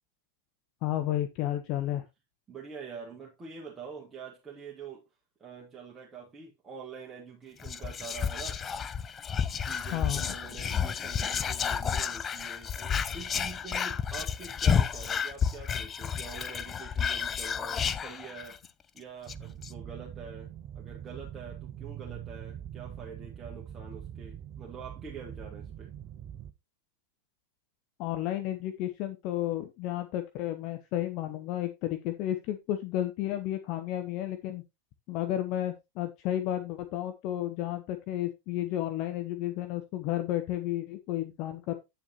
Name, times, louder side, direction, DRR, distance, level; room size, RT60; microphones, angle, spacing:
voice 1, 0.8-2.0 9.9-10.3 28.0-34.6 35.1-41.7, left 13 dB, 40° left, 0.8 m, -32 dB
voice 2, 2.5-5.0 5.4-8.6 9.6-18.6 18.9-25.9, right 5 dB, 15° right, 1.8 m, -45 dB
Whispering, 7.6-18.7 19.0-19.1 19.3-19.7, left 7 dB, 20° left, 0.5 m, -31 dB
sound 1, 19.3-26.5, right 10 dB, 35° right, 0.7 m, -43 dB
9.0 x 7.2 x 2.9 m
figure-of-eight pair, 90°, 0 cm